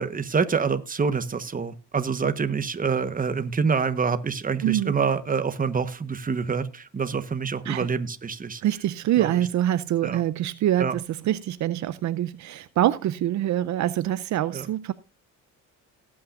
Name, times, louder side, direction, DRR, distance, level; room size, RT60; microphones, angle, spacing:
voice 1, 0.0-8.6 9.2-9.5 10.0-10.2 10.8-10.9 14.5-14.7, right 5 dB, 30° right, 1.1 m, -26 dB
voice 2, 4.6-4.9 7.7-7.9 8.6-14.9, right 12 dB, 70° right, 0.6 m, -25 dB
18.5 x 8.7 x 2.5 m
cardioid pair, 90°, 30 cm